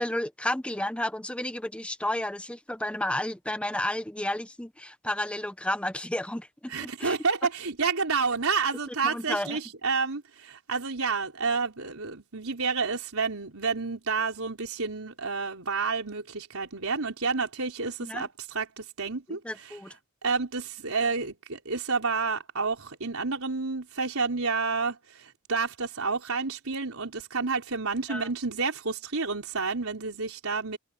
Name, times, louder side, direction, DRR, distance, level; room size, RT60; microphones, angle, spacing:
voice 1, 0.0-7.2 8.9-9.6 18.0-18.3 19.3-19.9 28.1-28.3, left 1 dB, 5° left, 0.9 m, -32 dB
voice 2, 6.7-19.8 20.2-30.8, right 4 dB, 90° right, 4.0 m, -30 dB
head